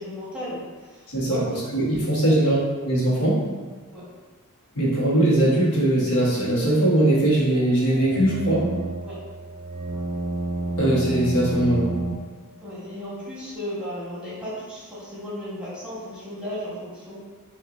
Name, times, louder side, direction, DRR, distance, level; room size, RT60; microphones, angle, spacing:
voice 1, 0.0-1.6 1.9-2.4 3.9-4.1 9.0-9.2 12.6-17.2, equal, 5° right, -8 dB, 1.2 m, -35 dB
voice 2, 1.1-2.6 2.8-3.4 4.7-8.7 10.8-11.9, right 1 dB, 85° left, -6 dB, 1.2 m, -20 dB
sound 1, 7.5-12.1, right 2 dB, 85° right, 0.5 m, -30 dB
5.6 x 2.6 x 2.5 m, 1.4 s
head